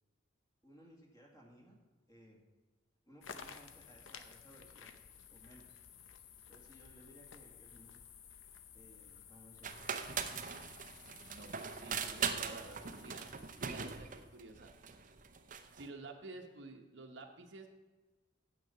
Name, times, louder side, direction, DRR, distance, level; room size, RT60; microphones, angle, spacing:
voice 1, 0.6-1.8 2.1-2.4 3.0-4.9 5.3-5.8 6.5-8.0 8.7-9.9, equal, 20° left, -1 dB, 2.0 m, -60 dB
sound 1, 3.2-14.4, left 7 dB, 85° left, 0.7 m, -55 dB
sound 2, 9.6-15.9, right 6 dB, 45° right, 0.7 m, -40 dB
voice 2, 11.3-13.3 13.6-14.7 15.7-17.7, right 3 dB, 65° right, 4 dB, 1.0 m, -51 dB
9.4 x 7.7 x 5.6 m, 1.3 s
head